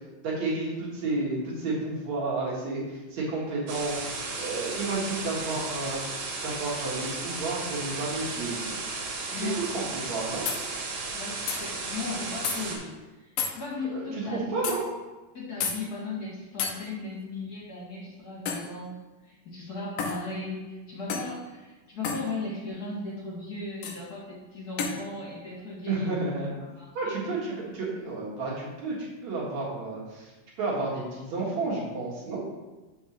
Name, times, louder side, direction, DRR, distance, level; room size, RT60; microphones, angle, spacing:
voice 1, 0.2-4.1 4.4-6.0 6.4-8.8 9.5-10.5 13.9-14.8 25.9-26.5 26.9-30.3 30.6-32.4, right 3 dB, 60° right, -5 dB, 2.8 m, -31 dB
sound 1, 3.7-12.8, right 3 dB, 85° right, 3.1 m, -34 dB
sound 2, 10.5-10.6 11.5-11.6 12.4-12.6 13.4-13.6 14.6-14.8 15.6-15.8 16.6-16.8 18.5-18.7 20.0-20.2 21.1-21.3 22.0-22.2 23.8-24.0 24.8-25.0, left 6 dB, 90° left, 2.6 m, -30 dB
voice 2, 11.1-12.9 13.2-14.8 15.3-19.0 19.2-26.1 26.8-27.2, left 3 dB, 35° left, -5 dB, 2.0 m, -37 dB
7.2 x 4.5 x 6.2 m, 1.2 s
omnidirectional pair, 3.8 m